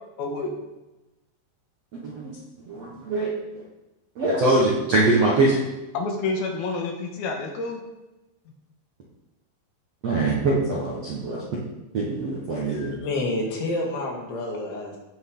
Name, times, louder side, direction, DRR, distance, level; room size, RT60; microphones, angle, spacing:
voice 1, 0.2-0.5 5.9-7.8, left 3 dB, 65° left, 1 dB, 2.8 m, -28 dB
voice 2, 2.0-2.4 2.7-3.3 3.5-3.6 4.2-5.6 10.0-11.4 11.9-12.9, right 2 dB, 65° right, -5 dB, 1.6 m, -23 dB
voice 3, 12.7-15.0, left 2 dB, 90° left, -1 dB, 4.5 m, -29 dB
16.5 x 6.3 x 3.9 m, 1.0 s
omnidirectional pair, 5.2 m